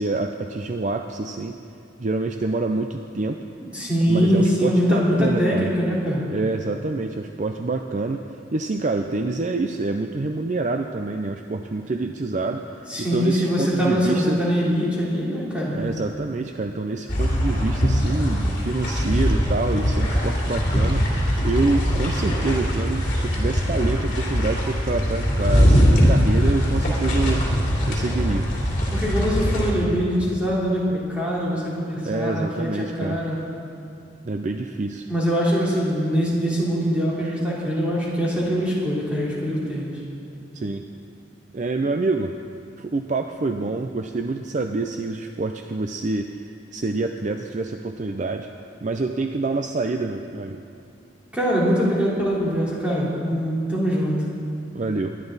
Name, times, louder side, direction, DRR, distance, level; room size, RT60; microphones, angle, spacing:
voice 1, 0.0-1.6 2.0-3.4 4.1-5.7 6.3-8.2 8.5-12.7 13.0-14.4 15.7-21.0 21.4-27.4 27.9-28.5 32.0-33.2 34.2-35.1 37.2-37.4 40.5-40.8 41.5-42.4 42.8-46.3 46.7-48.5 48.8-50.6 54.7-55.2, right 3 dB, 40° right, 5 dB, 0.5 m, -26 dB
voice 2, 3.6-6.2 12.9-15.8 28.9-33.4 35.1-39.9 51.3-54.2, equal, 5° right, -8 dB, 3.4 m, -23 dB
sound 1, 17.1-29.7, equal, 45° left, 2.9 m, -21 dB
21.0 x 11.0 x 4.0 m, 2.7 s
head